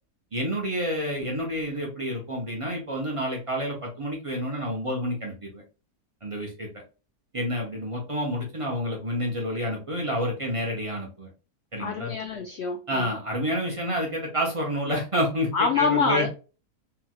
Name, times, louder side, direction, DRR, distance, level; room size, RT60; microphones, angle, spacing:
voice 1, 0.3-5.6 6.2-6.7 7.3-11.3 11.7-12.1 12.9-16.3, equal, 50° right, -1 dB, 0.4 m, -29 dB
voice 2, 11.8-13.1 15.5-16.3, left 5 dB, 85° left, 4 dB, 0.5 m, -25 dB
3.1 x 2.8 x 2.3 m, 0.33 s
omnidirectional pair, 1.7 m